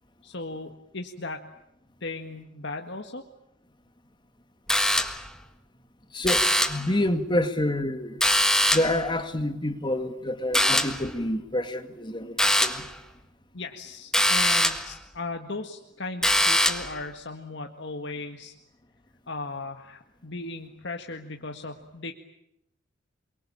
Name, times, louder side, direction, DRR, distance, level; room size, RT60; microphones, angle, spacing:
voice 1, 0.2-1.5 2.0-3.2 13.5-18.5 19.3-22.1, left 3 dB, 60° left, 4 dB, 1.9 m, -37 dB
sound 1, 4.7-5.4 6.2-6.9 8.2-9.0 10.5-11.1 12.4-12.9 14.1-14.9 16.2-17.0, left 1 dB, 5° left, 1.6 m, -23 dB
voice 2, 6.1-8.2 8.7-12.9, left 1 dB, 20° left, 8 dB, 2.1 m, -28 dB
28.5 x 23.5 x 8.8 m, 0.80 s
head